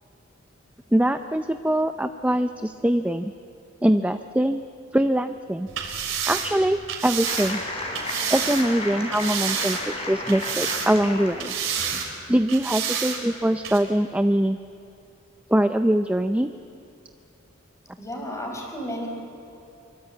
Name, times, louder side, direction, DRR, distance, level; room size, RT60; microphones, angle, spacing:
voice 1, 0.9-3.3 3.8-4.6 4.9-5.7 6.3-7.6 8.3-9.8 10.1-11.5 12.3-14.6 15.5-16.5, right 1 dB, 5° right, 8 dB, 0.5 m, -22 dB
sound 1, 5.7-8.7 9.1-10.0 10.3-11.1 11.4-12.1 12.5-13.2 13.6-13.8, right 7 dB, 70° right, 3.6 m, -29 dB
sound 2, 7.3-12.0, left 2 dB, 30° left, 4.9 m, -33 dB
voice 2, 18.0-19.1, equal, 15° left, 1 dB, 4.9 m, -32 dB
25.0 x 23.0 x 8.4 m, 2.6 s
head